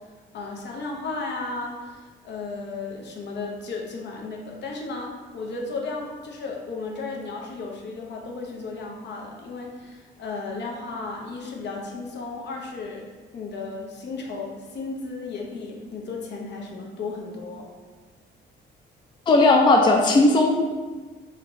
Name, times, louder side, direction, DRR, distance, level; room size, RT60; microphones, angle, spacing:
voice 1, 0.3-17.7, left 3 dB, 60° left, 0 dB, 0.6 m, -34 dB
voice 2, 19.3-20.6, left 2 dB, 25° left, 1 dB, 0.3 m, -16 dB
3.3 x 2.5 x 3.0 m, 1.3 s
cardioid pair, 90°, 20 cm